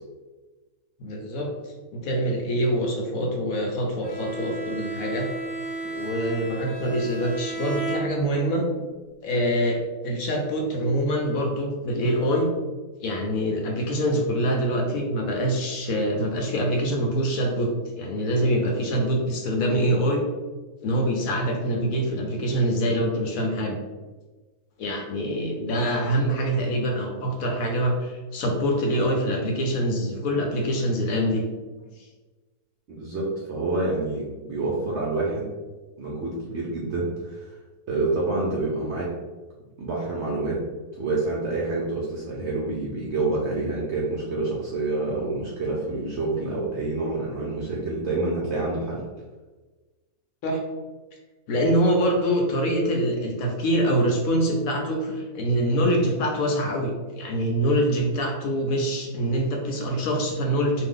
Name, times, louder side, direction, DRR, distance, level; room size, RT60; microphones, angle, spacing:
voice 1, 1.0-1.5 1.9-5.3 5.8-8.7 9.2-12.5 13.0-17.7 18.0-20.2 20.8-23.8 24.8-31.4 32.0-32.1 50.4-50.6 51.5-60.9, equal, 70° left, 1 dB, 0.9 m, -25 dB
Bowed string instrument, 4.0-8.6, right 2 dB, 35° left, 0.3 m, -33 dB
voice 2, 32.9-35.5 36.0-37.6 37.9-39.1 39.8-40.6 41.0-49.0, right 2 dB, 65° right, -4 dB, 0.7 m, -27 dB
2.6 x 2.3 x 3.5 m, 1.3 s
omnidirectional pair, 1.7 m